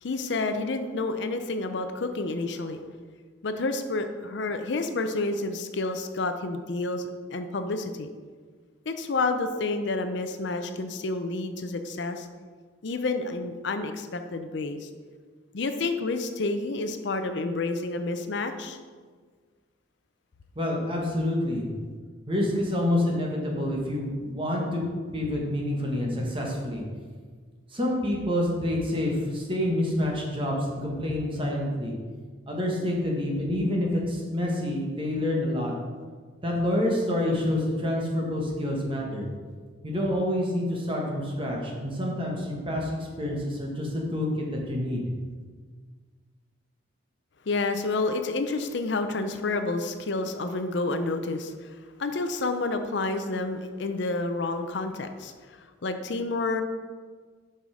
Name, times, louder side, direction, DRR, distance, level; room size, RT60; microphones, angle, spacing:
voice 1, 0.0-2.8 3.4-8.1 8.9-12.3 12.8-14.9 15.5-18.8 47.5-51.7 52.0-56.6, left 3 dB, 65° left, 8 dB, 0.6 m, -29 dB
voice 2, 20.5-21.7 22.3-24.8 25.1-26.8 27.7-31.9 32.5-35.7 36.4-39.3 39.8-45.0, left 1 dB, 25° right, -2 dB, 1.4 m, -27 dB
7.2 x 5.6 x 4.9 m, 1.6 s
head